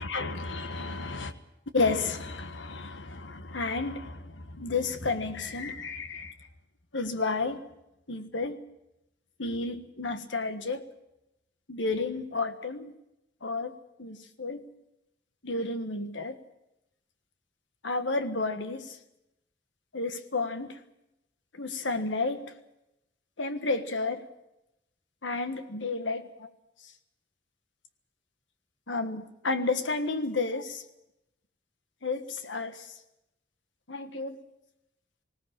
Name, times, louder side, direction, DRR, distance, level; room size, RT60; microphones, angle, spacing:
voice 1, 0.0-1.3 1.7-6.3 6.9-7.6 8.1-8.6 9.4-10.8 11.7-12.9 13.4-14.6 15.4-16.4 17.8-19.0 19.9-20.8 21.5-22.5 23.4-24.2 25.2-26.5 28.9-30.8 32.0-33.0 33.9-34.4, left 3 dB, 85° left, 9 dB, 1.5 m, -31 dB
20.0 x 17.5 x 8.9 m, 0.88 s
head